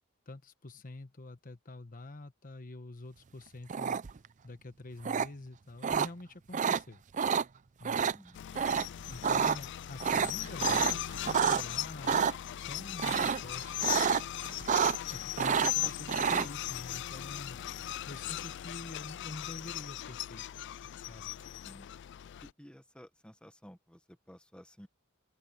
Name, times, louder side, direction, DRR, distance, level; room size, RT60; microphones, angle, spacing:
voice 1, 0.3-4.0 4.4-7.0 7.8-8.1 9.1-12.2 12.6-14.0 15.1-17.6 18.1-20.4 21.1-21.3, left 2 dB, 40° left, 1.2 m, -46 dB
sound 1, 3.7-4.3 5.0-5.3 5.8-6.1 6.5-6.8 7.1-7.4 7.8-8.1 8.6-8.8 9.1-9.6 10.0-11.6 12.0-12.3 13.0-13.5 13.8-14.2 14.5-15.1 15.4-16.5, right 7 dB, 35° right, 0.4 m, -28 dB
voice 2, 8.1-8.7 21.6-21.9 22.4-24.9, equal, 5° left, 1.5 m, -55 dB
sound 2, 8.3-22.5, left 13 dB, 60° left, 0.3 m, -38 dB
open air
head